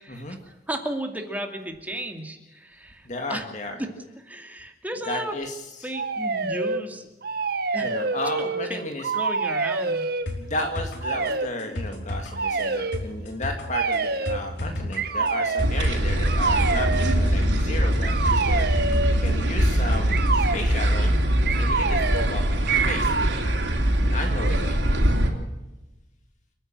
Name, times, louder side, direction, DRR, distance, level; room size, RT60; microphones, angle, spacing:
voice 1, 0.0-3.4 3.7-3.9 4.2-5.4 5.8-7.1 7.7-7.9 8.4-10.1 14.5-14.9 21.0-21.3, right 1 dB, 10° right, 4 dB, 2.5 m, -34 dB
voice 2, 3.1-3.8 5.1-5.9 7.8-9.0 10.4-18.7 19.2-21.1 21.6-22.4 22.8-23.1 24.0-24.8, left 2 dB, 40° left, 4 dB, 2.1 m, -33 dB
sound 1, 5.9-6.8 7.2-8.7 9.0-10.3 11.0-11.5 12.3-13.0 13.7-14.4 14.9-15.7 16.2-17.2 18.0-19.2 20.1-20.6 21.4-22.3 22.7-23.3, right 4 dB, 60° right, 1.4 m, -26 dB
sound 2, 10.3-20.3 20.6-20.7, left 1 dB, 75° left, 5.0 m, -34 dB
sound 3, 15.6-25.3, right 1 dB, 90° right, 3.5 m, -22 dB
29.5 x 10.0 x 8.9 m, 1.0 s
head